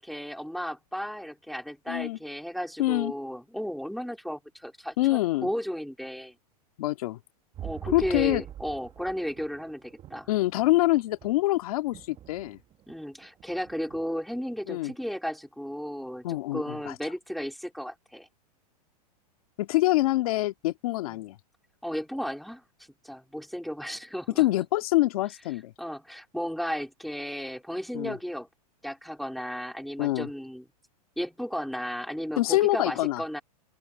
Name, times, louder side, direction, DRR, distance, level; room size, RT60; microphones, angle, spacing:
voice 1, 0.0-6.4 7.6-10.3 12.9-18.3 21.1-21.2 21.8-22.6 23.0-24.4 25.8-28.5 28.8-30.7 31.2-33.4, equal, ahead, 3.6 m, -34 dB
voice 2, 1.9-2.2 2.8-3.1 5.0-5.5 6.8-7.2 7.9-8.4 10.3-12.6 14.7-14.9 16.2-17.0 19.6-21.4 24.4-25.7 27.9-28.2 30.0-30.3 32.4-33.2, left 17 dB, 65° left, 1.9 m, -25 dB
sound 1, 7.5-11.6 11.9-13.0 13.2-14.0 14.4-14.5, right 11 dB, 25° right, 1.6 m, -44 dB
open air
hypercardioid pair, 135°, 20 cm